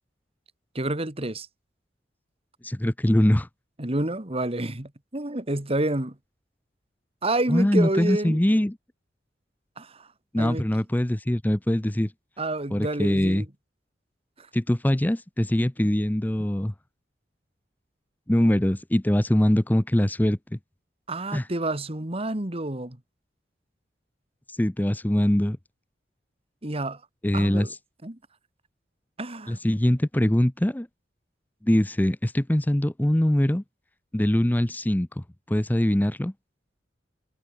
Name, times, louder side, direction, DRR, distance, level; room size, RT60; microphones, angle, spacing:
voice 1, 0.8-1.5 3.8-6.2 7.2-8.4 9.8-10.1 10.4-10.7 12.4-13.5 14.4-14.5 21.1-23.0 26.6-27.0 27.3-27.7 28.0-28.2 29.2-29.6, right 2 dB, 35° right, 2.0 m, -29 dB
voice 2, 2.6-3.5 7.5-8.7 10.3-12.1 12.7-13.4 14.5-16.7 18.3-20.6 21.3-21.5 24.5-25.6 27.2-27.8 29.5-30.9 31.6-33.6 34.1-36.3, left 1 dB, 10° left, 0.6 m, -23 dB
head